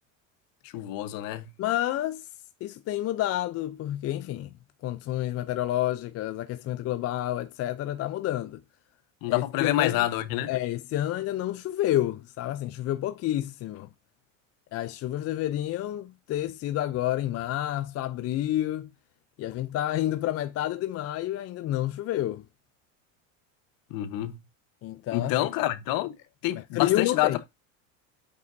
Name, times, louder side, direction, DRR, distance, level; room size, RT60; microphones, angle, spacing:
voice 1, 0.7-1.5 9.2-10.5 23.9-24.4 25.1-26.1 26.4-27.4, left 14 dB, 55° left, 1.1 m, -27 dB
voice 2, 1.6-2.3 2.6-4.5 4.8-8.6 9.3-10.1 10.5-13.9 14.7-18.9 19.4-22.4 24.8-25.5 26.6-27.4, left 13 dB, 40° left, 0.5 m, -29 dB
8.2 x 5.4 x 2.6 m
supercardioid pair, 110°, 40 cm